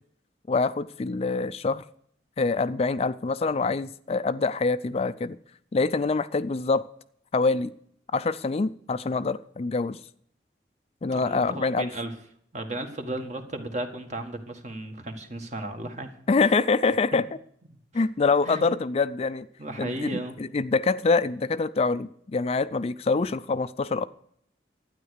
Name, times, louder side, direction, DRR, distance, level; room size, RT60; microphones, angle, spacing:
voice 1, 0.5-1.8 2.4-5.4 5.7-6.8 7.3-7.7 8.1-10.0 11.0-11.9 16.3-17.3 17.9-19.5 19.8-24.0, left 4 dB, 35° left, 13 dB, 0.4 m, -25 dB
voice 2, 11.1-12.1 12.5-16.1 17.9-18.0 18.4-18.6 19.6-20.3, right 1 dB, 40° right, 5 dB, 1.7 m, -34 dB
12.5 x 9.5 x 6.5 m, 0.66 s
head